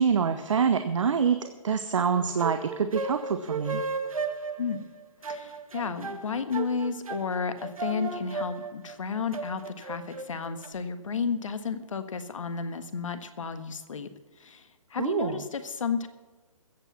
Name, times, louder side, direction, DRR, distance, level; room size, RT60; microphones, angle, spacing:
voice 1, 0.0-3.8 15.0-15.4, right 6 dB, 60° right, 9 dB, 1.0 m, -26 dB
sound 1, 2.2-10.7, right 4 dB, 80° right, 1.5 m, -35 dB
voice 2, 5.2-14.1 14.4-16.1, left 5 dB, 65° left, 10 dB, 1.5 m, -32 dB
15.0 x 8.5 x 7.2 m, 1.3 s
hypercardioid pair, 145°, 18 cm